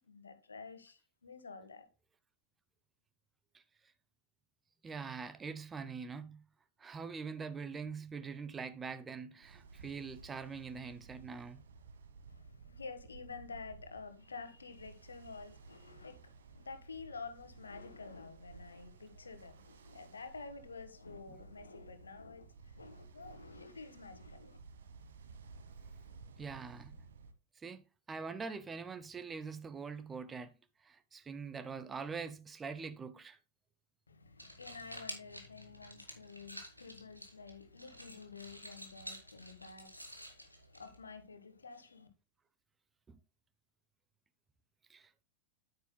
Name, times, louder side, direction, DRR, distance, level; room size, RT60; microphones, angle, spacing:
voice 1, 0.1-1.9 12.3-24.6 34.1-42.1, left 4 dB, 75° left, 1.3 m, -50 dB
voice 2, 4.8-6.4 6.8-11.6 26.4-27.0 27.6-30.5 30.8-33.4 43.1-43.2 44.9-45.2, right 5 dB, 15° right, 0.7 m, -44 dB
Ocean, 9.4-27.3, right 4 dB, 65° right, 1.1 m, -55 dB
sound 1, 34.2-41.2, equal, 90° right, 1.6 m, -51 dB
9.4 x 9.0 x 2.2 m
figure-of-eight pair, 90°, 0 cm